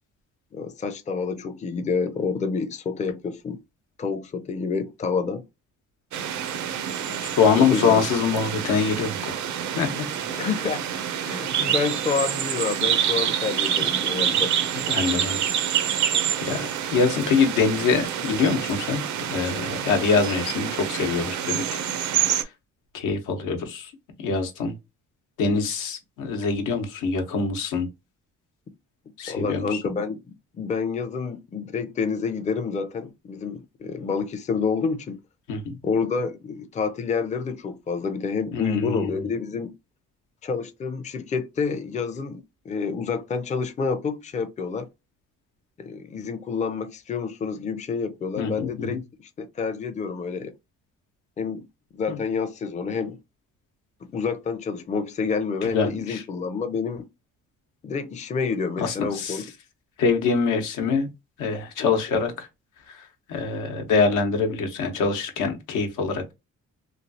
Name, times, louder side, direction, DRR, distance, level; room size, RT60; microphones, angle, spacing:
voice 1, 0.5-3.6 4.0-5.4 7.6-8.1 9.8-10.0 10.3-10.9 11.2-14.5 15.2-15.3 29.3-30.2 30.5-35.2 35.8-39.7 40.4-44.9 45.8-49.0 49.4-50.6 51.4-51.7 51.9-53.2 54.1-57.1 57.8-59.4 60.5-60.6, left 5 dB, 25° left, 0.4 m, -28 dB
sound 1, 6.1-22.4, right 9 dB, 70° right, 0.6 m, -27 dB
voice 2, 7.0-9.3 9.8-9.9 14.9-15.4 16.4-19.0 19.3-21.8 22.9-23.9 24.2-24.7 25.4-27.9 29.2-29.8 35.5-35.8 38.5-39.1 48.4-49.0 52.1-52.2 55.6-56.2 58.8-59.4 60.0-61.1 61.4-62.5 63.3-66.3, left 5 dB, 85° left, 0.9 m, -24 dB
3.1 x 2.3 x 2.6 m
cardioid pair, 90°, 30 cm